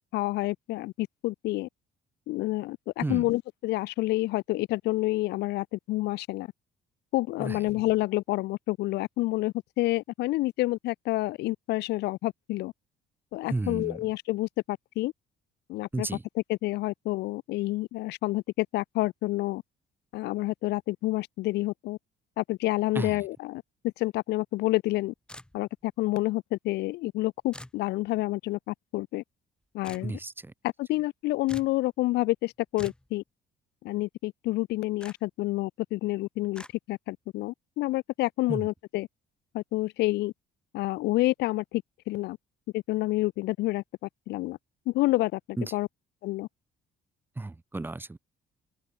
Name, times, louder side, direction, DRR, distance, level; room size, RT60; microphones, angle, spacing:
voice 1, 0.1-1.7 2.3-6.5 7.1-12.7 13.3-15.1 15.7-16.1 16.5-19.6 20.1-22.0 22.4-25.1 25.5-29.2 29.7-30.1 30.8-33.2 33.8-36.6 36.9-39.1 39.5-40.3 40.7-42.4 42.7-44.6 44.9-45.9 46.2-46.5, left 18 dB, 85° left, 1.3 m, -29 dB
voice 2, 13.5-14.0 15.9-16.2 22.9-23.3 30.0-30.5 38.5-38.7 45.6-45.7 47.4-48.2, right 2 dB, 10° right, 1.0 m, -33 dB
sound 1, 25.3-25.8 27.5-27.8 29.8-30.1 31.5-31.8 32.8-33.1 35.0-35.2 36.5-36.7, left 1 dB, 5° left, 5.7 m, -44 dB
open air
cardioid pair, 110°, 17 cm